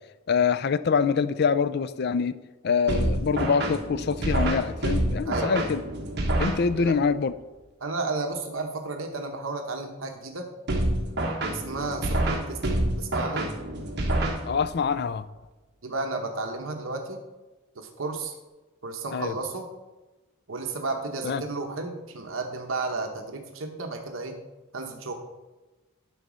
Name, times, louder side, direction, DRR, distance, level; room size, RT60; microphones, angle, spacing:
voice 1, 0.3-2.3 2.6-5.8 6.4-7.3 14.4-15.2 19.1-19.3 21.2-21.4, left 5 dB, 50° left, 14 dB, 0.4 m, -25 dB
sound 1, 2.9-7.1 10.7-14.9, right 1 dB, 55° right, 1.4 m, -28 dB
voice 2, 5.2-5.7 6.7-7.0 7.8-10.5 11.5-13.5 15.8-17.2 17.8-18.3 18.8-19.7 20.5-24.4 24.7-25.1, right 3 dB, 75° right, 4 dB, 1.0 m, -33 dB
11.0 x 4.0 x 6.2 m, 1.1 s
head